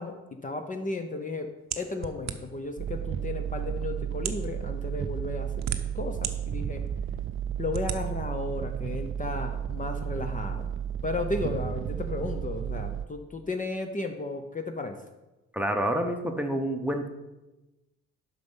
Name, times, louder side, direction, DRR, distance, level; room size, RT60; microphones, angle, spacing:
voice 1, 0.0-6.8 7.6-10.7 11.0-15.0, left 3 dB, 25° left, 6 dB, 0.7 m, -34 dB
sound 1, 1.7-2.7 3.5-3.6 4.1-4.5 5.3-6.3 6.8-6.9 7.7-8.0, right 9 dB, 60° right, 0.8 m, -34 dB
sound 2, 2.8-13.1, right 9 dB, 45° right, 0.4 m, -33 dB
voice 2, 15.5-17.1, right 1 dB, 5° right, 4 dB, 0.8 m, -28 dB
7.6 x 5.5 x 5.5 m, 1.0 s
cardioid pair, 90°, 30 cm